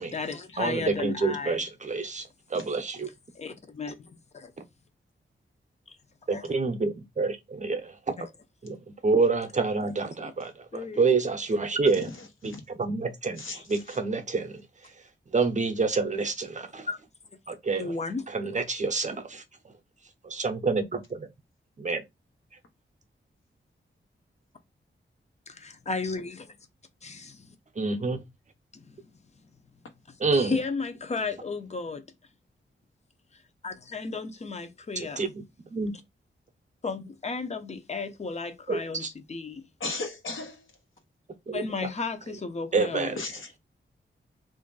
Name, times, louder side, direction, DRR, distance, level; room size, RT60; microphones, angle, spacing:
voice 1, 0.0-1.6 3.3-4.5 5.9-6.0 6.3-6.5 8.2-8.3 9.8-9.9 10.2-10.3 10.7-11.2 16.9-17.0 17.8-18.3 25.5-26.6 27.0-27.6 28.7-29.5 30.3-32.0 33.3-35.3 36.8-39.7 41.5-43.2, left 4 dB, 35° left, 0.6 m, -34 dB
voice 2, 0.6-3.1 6.3-7.9 8.6-12.1 12.4-13.4 13.7-14.6 15.3-16.9 17.5-17.9 18.3-19.4 20.2-21.3 21.8-22.0 27.8-28.2 30.2-30.6 35.0-35.4 35.7-35.9 38.7-39.1 41.5-41.6 42.7-43.2, right 4 dB, 40° right, 0.6 m, -27 dB
voice 3, 12.1-12.6 13.4-14.0 39.8-40.6 43.2-43.6, left 3 dB, 85° left, 1.1 m, -37 dB
3.0 x 2.6 x 3.8 m
wide cardioid pair, 110°, 20 cm